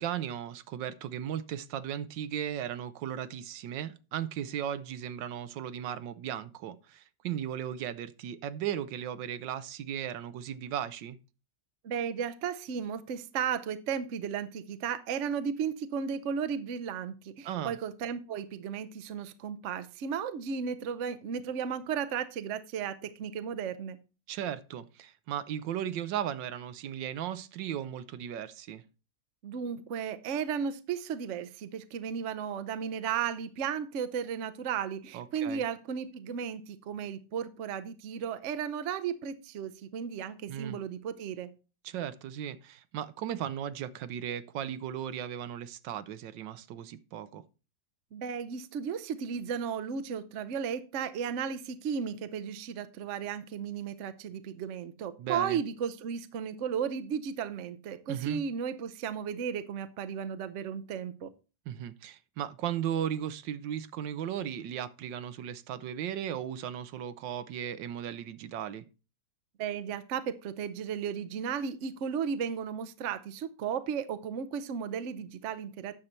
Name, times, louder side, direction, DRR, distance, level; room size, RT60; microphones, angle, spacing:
voice 1, 0.0-11.2 17.4-17.8 24.3-28.8 35.1-35.6 40.5-40.8 41.8-47.4 55.2-55.6 58.1-58.4 61.7-68.8, right 10 dB, 80° right, 1.4 m, -36 dB
voice 2, 11.8-24.0 29.4-41.5 48.1-61.3 69.6-76.0, right 7 dB, 55° right, 0.8 m, -34 dB
9.8 x 6.6 x 4.3 m
omnidirectional pair, 2.0 m